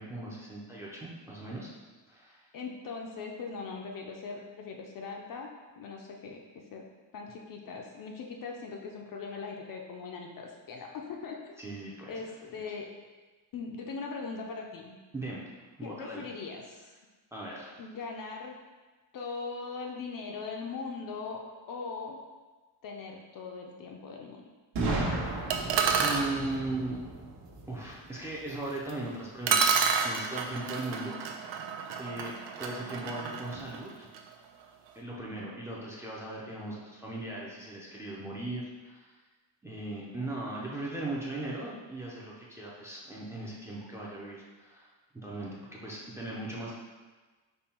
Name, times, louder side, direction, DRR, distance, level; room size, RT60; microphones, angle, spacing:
voice 1, 0.0-1.7 2.1-2.4 11.6-12.2 12.5-12.6 15.1-15.5 15.8-16.3 17.3-17.8 26.0-27.0 27.7-31.5 32.0-34.1 35.0-39.2 39.6-44.9 45.1-46.7, right 2 dB, 5° right, -5 dB, 0.5 m, -38 dB
voice 2, 2.5-5.5 5.8-6.4 6.7-6.9 7.1-11.6 12.1-12.9 13.5-15.0 15.8-16.9 17.8-18.6 19.1-22.2 22.8-24.4 39.9-40.3, left 4 dB, 45° left, 1 dB, 0.5 m, -40 dB
Boom, 24.7-28.6, right 2 dB, 85° right, 1.3 m, -34 dB
sound 1, 25.5-26.3 28.9-29.0 29.5-34.3, right 6 dB, 70° right, 0.6 m, -29 dB
5.4 x 2.2 x 4.3 m, 1.3 s
cardioid pair, 155°, 47 cm